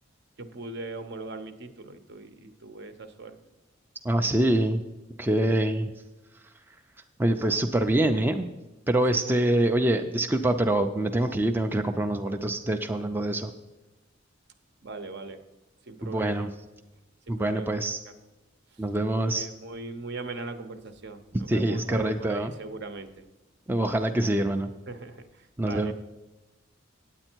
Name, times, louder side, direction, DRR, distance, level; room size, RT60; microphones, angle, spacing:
voice 1, 0.4-3.4 7.3-7.5 9.1-9.2 14.8-15.4 15.9-16.5 17.3-17.8 18.1-18.2 19.2-23.2 24.9-25.9, right 3 dB, 60° right, 9 dB, 0.8 m, -40 dB
voice 2, 4.0-4.8 5.2-5.9 7.2-8.5 8.9-13.5 16.0-16.5 17.3-18.0 18.8-19.5 21.5-22.5 23.7-24.7 25.6-25.9, right 1 dB, 10° right, 5 dB, 0.4 m, -25 dB
8.9 x 8.7 x 4.5 m, 1.1 s
head